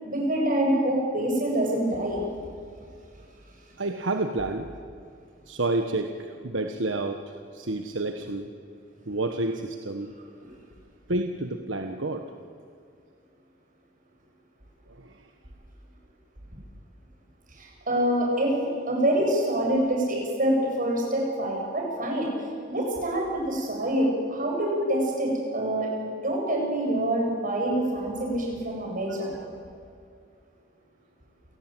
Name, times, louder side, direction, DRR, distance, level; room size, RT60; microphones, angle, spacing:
voice 1, 0.0-2.2 17.5-22.3 22.7-29.4, right 1 dB, 45° right, 0 dB, 7.8 m, -26 dB
voice 2, 3.8-4.7 5.5-8.5 9.1-10.1 11.1-12.2 14.9-15.3 25.8-25.9 29.1-29.2, right 2 dB, 70° right, 5 dB, 1.4 m, -30 dB
29.0 x 17.5 x 9.2 m, 2.4 s
head